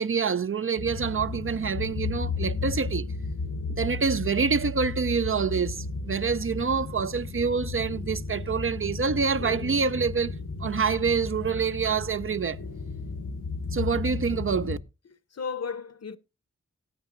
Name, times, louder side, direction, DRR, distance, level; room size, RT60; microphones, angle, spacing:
voice 1, 0.0-3.1 3.8-10.3 10.6-12.6 13.7-14.8, right 5 dB, 45° right, 0.5 m, -26 dB
sound 1, 0.8-14.8, left 3 dB, 80° left, 1.2 m, -34 dB
voice 2, 15.0-16.2, left 6 dB, 55° left, 0.9 m, -35 dB
18.5 x 8.8 x 2.5 m
cardioid pair, 40°, 30 cm